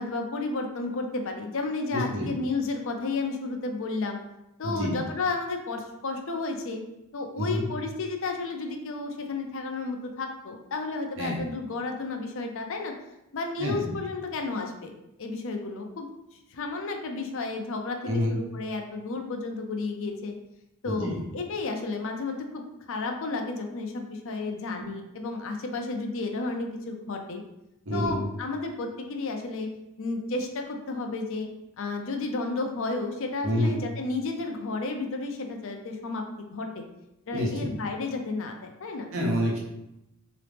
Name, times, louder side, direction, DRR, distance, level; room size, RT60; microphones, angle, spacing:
voice 1, 0.0-4.2 4.6-6.8 7.1-12.9 13.3-14.9 15.2-16.1 16.5-20.3 20.8-27.4 27.9-29.7 30.0-31.5 31.8-36.8 37.3-39.1, left 3 dB, 60° left, 4 dB, 0.6 m, -32 dB
voice 2, 1.9-2.3 4.6-4.9 7.4-7.6 11.2-11.4 13.6-13.9 18.0-18.4 20.8-21.2 24.8-24.9 27.8-28.2 33.4-33.8 37.3-37.7 39.1-39.6, equal, 60° right, -2 dB, 1.0 m, -28 dB
3.9 x 2.9 x 3.4 m, 0.88 s
head